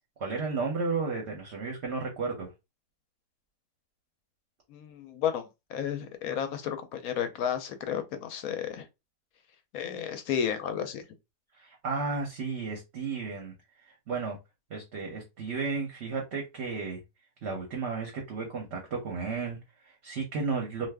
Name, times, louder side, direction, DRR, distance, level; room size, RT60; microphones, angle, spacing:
voice 1, 0.2-2.5 11.5-14.4 14.7-17.0 17.4-20.9, right 4 dB, 55° right, 0.8 m, -33 dB
voice 2, 4.7-8.9 9.7-11.0, left 8 dB, 70° left, 0.9 m, -32 dB
2.5 x 2.4 x 3.3 m
omnidirectional pair, 1.8 m